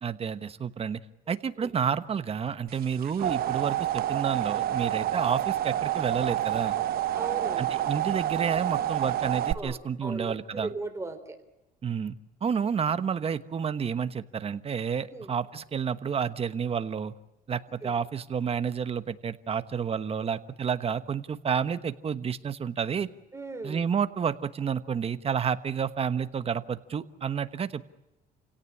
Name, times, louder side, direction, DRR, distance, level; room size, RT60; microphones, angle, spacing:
voice 1, 0.0-1.0 1.3-6.8 7.6-10.7 11.8-12.2 12.4-17.1 17.5-23.1 23.6-27.9, right 7 dB, 35° right, 12 dB, 1.2 m, -30 dB
sound 1, 2.8-9.5, right 12 dB, 60° right, 0.9 m, -28 dB
voice 2, 7.1-7.7 9.5-11.4 15.1-15.3 17.8-17.9 23.3-23.8, right 3 dB, 15° right, 7 dB, 3.8 m, -37 dB
29.0 x 17.5 x 9.9 m, 0.97 s
cardioid pair, 110°, 17 cm